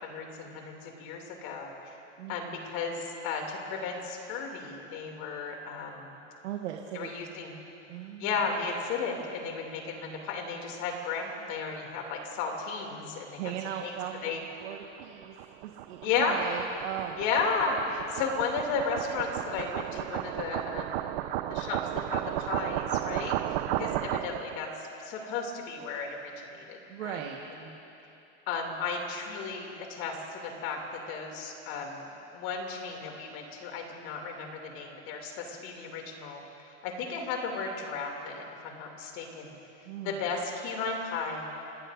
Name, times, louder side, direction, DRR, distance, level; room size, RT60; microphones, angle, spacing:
voice 1, 0.0-1.7 2.3-6.1 6.9-7.5 8.2-13.4 13.8-13.9 14.2-14.4 16.0-16.4 17.2-21.0 21.5-23.4 23.8-24.7 25.0-26.8 27.0-27.2 28.5-30.8 31.1-32.1 32.3-36.4 36.8-39.5 40.0-41.5, left 5 dB, 50° left, 2 dB, 2.8 m, -34 dB
voice 2, 2.2-2.6 6.4-7.1 7.9-8.4 13.4-15.4 15.6-17.2 23.7-24.0 26.9-27.4 39.8-40.2, right 10 dB, 75° right, 1 dB, 1.5 m, -38 dB
sound 1, 14.6-24.6, right 13 dB, 45° right, 0.6 m, -34 dB
27.5 x 19.5 x 2.6 m, 2.8 s
supercardioid pair, 145°, 36 cm